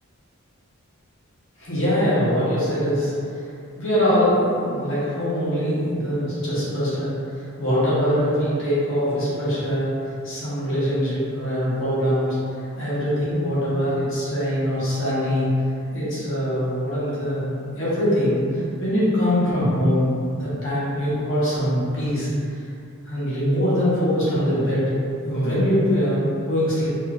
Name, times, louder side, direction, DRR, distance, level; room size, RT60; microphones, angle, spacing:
voice 1, 1.6-3.1 3.7-9.9 10.2-15.5 15.9-22.3 23.0-24.8 25.2-26.9, equal, 55° left, -10 dB, 1.0 m, -23 dB
3.1 x 2.7 x 2.4 m, 2.6 s
head